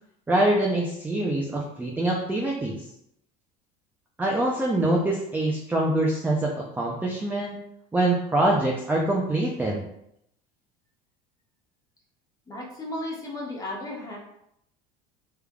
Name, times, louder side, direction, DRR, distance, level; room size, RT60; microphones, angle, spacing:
voice 1, 0.3-2.8 4.2-7.6 7.9-9.9, right 1 dB, 10° right, -2 dB, 0.5 m, -24 dB
voice 2, 12.5-14.2, left 1 dB, 15° left, -3 dB, 1.2 m, -34 dB
3.5 x 3.3 x 2.3 m, 0.75 s
supercardioid pair, 110°, 21 cm